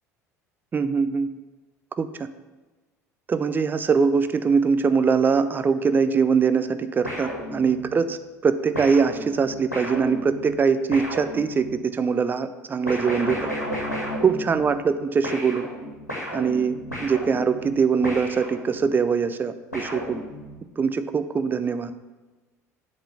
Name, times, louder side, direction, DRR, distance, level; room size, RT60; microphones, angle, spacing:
voice 1, 0.7-1.3 2.0-2.3 3.3-8.2 8.4-13.5 14.2-15.7 16.3-16.8 17.0-20.2 20.8-21.9, right 5 dB, 20° right, 11 dB, 0.5 m, -22 dB
sound 1, 7.0-8.0 8.7-11.9 12.9-15.0 15.2-19.0 19.7-20.7, equal, 85° left, 1.6 m, -34 dB
7.8 x 4.0 x 6.8 m, 1.2 s
figure-of-eight pair, 65°, 8 cm